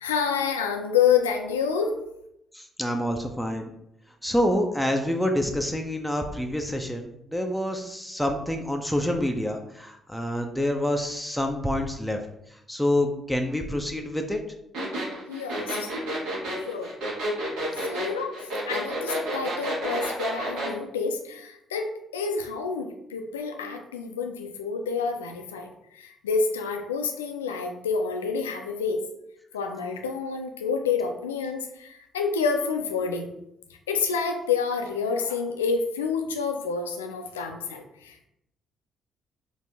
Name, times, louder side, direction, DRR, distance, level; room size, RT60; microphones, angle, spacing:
voice 1, 0.0-2.0 15.3-15.9 16.7-16.9 17.8-29.0 29.5-33.4 33.9-38.3, left 5 dB, 75° left, 5 dB, 0.4 m, -28 dB
voice 2, 2.5-3.7 4.2-12.2 12.5-14.4, left 1 dB, ahead, 2 dB, 0.5 m, -27 dB
sound 1, 14.7-20.7, right 1 dB, 60° right, 1.3 m, -30 dB
4.0 x 2.6 x 3.4 m, 0.79 s
figure-of-eight pair, 45°, 0 cm